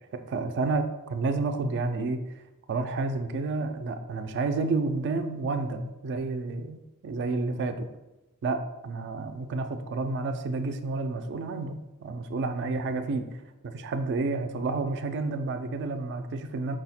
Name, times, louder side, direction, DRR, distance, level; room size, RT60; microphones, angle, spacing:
voice 1, 0.1-2.2 2.7-7.9 8.4-13.2 13.6-16.8, right 3 dB, 50° right, 8 dB, 0.3 m, -30 dB
4.6 x 2.1 x 4.1 m, 0.98 s
head